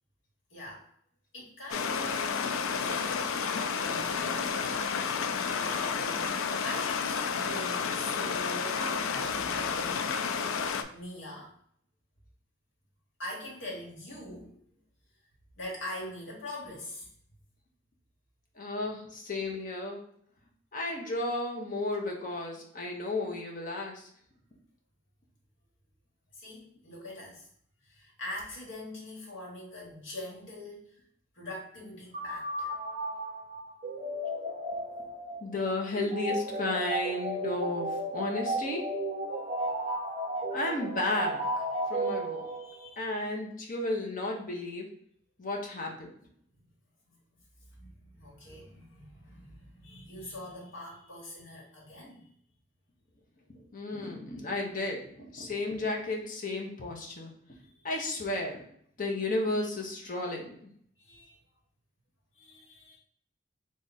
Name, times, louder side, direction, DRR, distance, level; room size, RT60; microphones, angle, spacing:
voice 1, 0.5-0.9 1.3-2.5 2.8-4.8 5.5-10.1 10.9-11.5 13.2-14.5 15.6-17.1 26.3-27.5 27.8-31.0 31.3-32.7 42.0-42.1 42.5-43.2 47.8-52.3 57.6-58.1 61.0-61.4 62.3-63.0, left 1 dB, 70° left, -3 dB, 1.4 m, -43 dB
Stream, 1.7-10.8, left 6 dB, 90° left, 0.4 m, -31 dB
voice 2, 18.6-20.0 20.7-24.1 35.4-38.9 40.5-42.5 43.0-44.9 45.4-46.1 53.7-57.3 57.8-58.6 59.0-60.7, left 2 dB, 40° left, 1 dB, 0.8 m, -33 dB
sound 1, 32.1-42.9, right 1 dB, 30° right, 0.5 m, -34 dB
3.5 x 2.5 x 4.1 m, 0.64 s
head